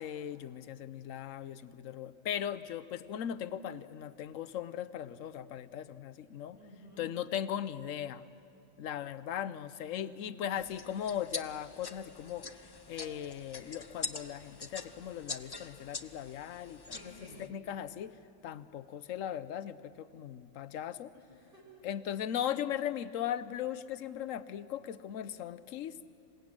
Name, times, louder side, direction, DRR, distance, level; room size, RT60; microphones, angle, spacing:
voice 1, 0.0-6.6 7.0-8.2 8.8-12.5 12.9-18.1 18.4-21.1 21.8-25.9, left 10 dB, 80° left, 14 dB, 1.1 m, -38 dB
voice 2, 6.6-7.1 9.8-10.7 16.9-17.4 21.1-21.8, equal, 45° right, -4 dB, 7.0 m, -54 dB
sound 1, 10.6-17.5, left 4 dB, 25° left, 0.5 m, -44 dB
27.0 x 17.5 x 8.9 m, 2.7 s
omnidirectional pair, 1.3 m